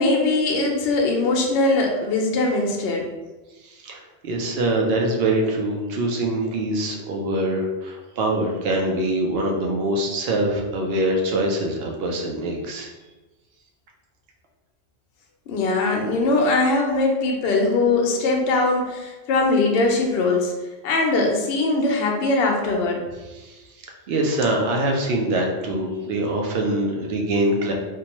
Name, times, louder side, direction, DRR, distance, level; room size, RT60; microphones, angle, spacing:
voice 1, 0.0-3.1 15.5-20.5 20.8-23.0, left 2 dB, 65° left, 1 dB, 0.7 m, -21 dB
voice 2, 3.6-12.9 23.3-27.7, right 1 dB, 65° right, 1 dB, 0.7 m, -24 dB
2.7 x 2.2 x 2.9 m, 1.1 s
omnidirectional pair, 1.2 m